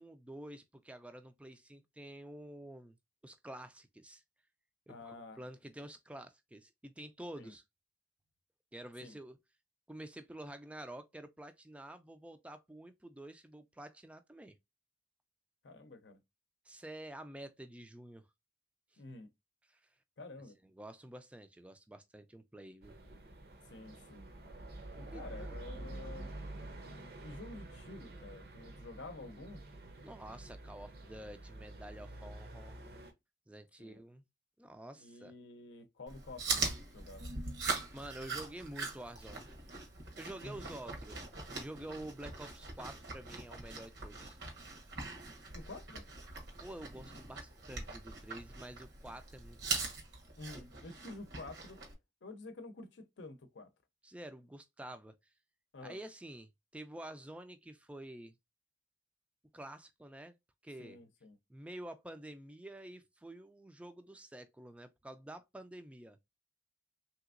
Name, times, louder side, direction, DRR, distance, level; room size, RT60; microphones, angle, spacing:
voice 1, 0.0-3.0 3.2-4.2 4.9-7.6 8.7-9.4 9.9-14.6 16.7-18.3 19.7-19.8 20.7-23.0 25.1-25.6 30.0-32.8 33.5-34.2 34.6-35.3 37.9-39.5 40.2-41.2 41.6-44.4 46.6-49.8 54.0-55.1 55.8-58.4 59.5-60.4 60.6-61.0 61.5-66.2, right 1 dB, 5° right, 0.3 m, -49 dB
voice 2, 4.9-5.4 7.4-7.5 9.0-9.2 15.6-16.2 19.0-19.3 20.2-20.6 23.7-24.3 25.0-26.3 27.2-29.6 33.8-34.0 35.0-36.7 36.9-37.3 40.4-40.8 45.5-46.0 50.4-51.8 52.2-53.7 55.7-56.0 60.8-61.4, left 2 dB, 85° left, 0.6 m, -49 dB
sound 1, 22.8-33.1, right 1 dB, 60° right, 0.7 m, -48 dB
Chewing mastication, 36.1-51.9, right 3 dB, 80° right, 1.1 m, -42 dB
3.4 x 2.9 x 2.4 m
head